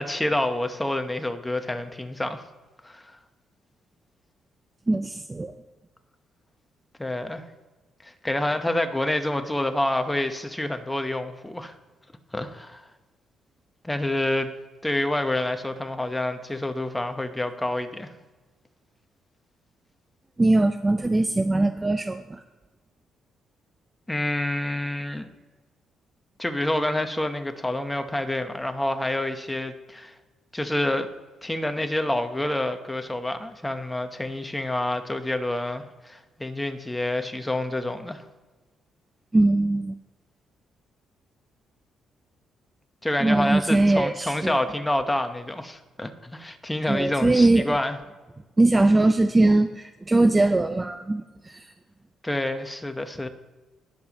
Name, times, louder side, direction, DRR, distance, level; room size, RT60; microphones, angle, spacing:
voice 1, 0.0-2.4 2.8-3.2 7.0-7.4 8.0-11.7 12.3-12.8 13.8-14.5 14.8-18.1 24.1-25.3 26.4-30.1 30.5-31.1 31.4-38.2 43.0-48.0 52.2-53.3, left 1 dB, 10° left, 7 dB, 1.1 m, -28 dB
voice 2, 4.9-5.5 20.4-22.4 39.3-40.0 43.2-44.6 46.9-47.8 48.6-51.6, right 2 dB, 20° right, 9 dB, 0.5 m, -21 dB
19.5 x 6.9 x 3.1 m, 1.2 s
cardioid pair, 90°, 0 cm